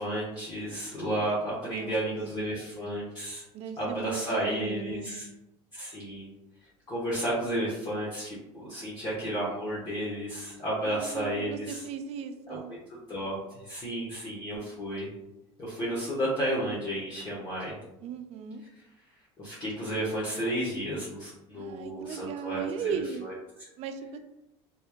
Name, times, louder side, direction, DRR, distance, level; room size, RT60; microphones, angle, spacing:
voice 1, 0.0-3.4 3.8-5.3 5.7-6.3 6.9-11.8 12.5-12.6 13.1-13.4 13.6-15.1 15.6-17.8 19.4-23.3, right 1 dB, 35° left, -7 dB, 1.4 m, -32 dB
voice 2, 1.7-2.6 3.5-5.2 10.8-12.8 18.0-18.6 21.5-23.2 23.8-24.2, right 6 dB, 55° right, 8 dB, 0.5 m, -37 dB
4.3 x 3.4 x 2.4 m, 0.91 s
cardioid pair, 120°, 13 cm